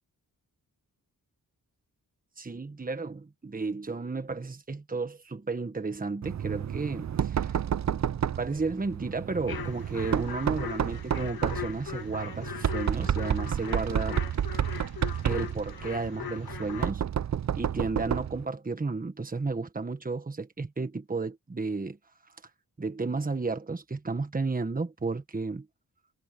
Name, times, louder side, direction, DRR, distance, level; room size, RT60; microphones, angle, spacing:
voice 1, 2.4-7.6 7.9-8.0 8.4-14.2 15.2-17.0 17.6-22.0 22.8-25.7, right 3 dB, 25° right, 1.4 m, -33 dB
Knock, 6.2-18.4, right 9 dB, 50° right, 0.6 m, -31 dB
sound 1, 9.5-16.9, left 9 dB, 80° left, 1.7 m, -40 dB
wide cardioid pair, 120°, 36 cm